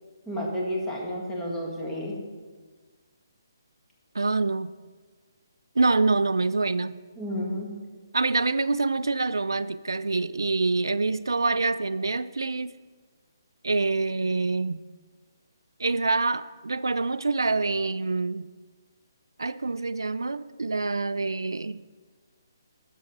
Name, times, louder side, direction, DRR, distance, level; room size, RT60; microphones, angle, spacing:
voice 1, 0.3-2.2 7.2-7.7, equal, 10° left, 1.9 m, -31 dB
voice 2, 4.1-4.7 5.8-7.0 8.1-12.7 13.6-14.8 15.8-18.5 19.4-21.8, right 3 dB, 90° right, 0.3 m, -26 dB
11.0 x 7.1 x 4.1 m
figure-of-eight pair, 150°, 2 cm